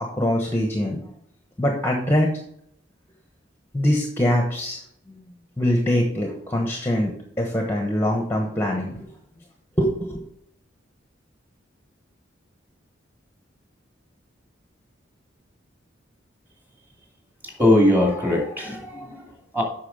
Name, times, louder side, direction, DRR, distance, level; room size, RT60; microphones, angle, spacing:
voice 1, 0.1-1.0 1.6-2.3 3.7-4.8 5.6-7.1 7.4-9.1 9.8-10.3, left 1 dB, 10° left, 1 dB, 1.1 m, -23 dB
voice 2, 17.4-19.6, left 1 dB, 10° right, 1 dB, 2.4 m, -21 dB
8.3 x 6.0 x 5.4 m, 0.71 s
head